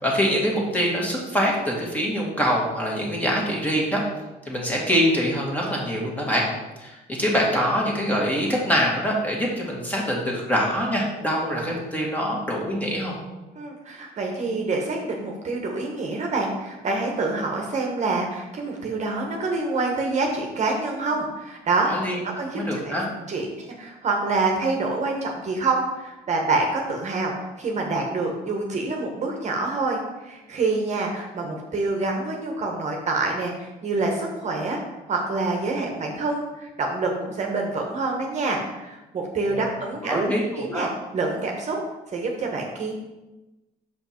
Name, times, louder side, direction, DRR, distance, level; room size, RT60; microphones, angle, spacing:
voice 1, 0.0-4.0 4.5-6.5 6.8-13.1 21.9-22.2 22.5-23.0 39.5-39.6 40.0-40.9, equal, 10° left, -2 dB, 1.9 m, -24 dB
voice 2, 13.5-21.9 22.2-22.9 23.3-34.8 35.1-41.8 42.1-42.9, right 3 dB, 45° right, 1 dB, 1.2 m, -26 dB
6.4 x 5.1 x 4.4 m, 1.1 s
cardioid pair, 110°, 17 cm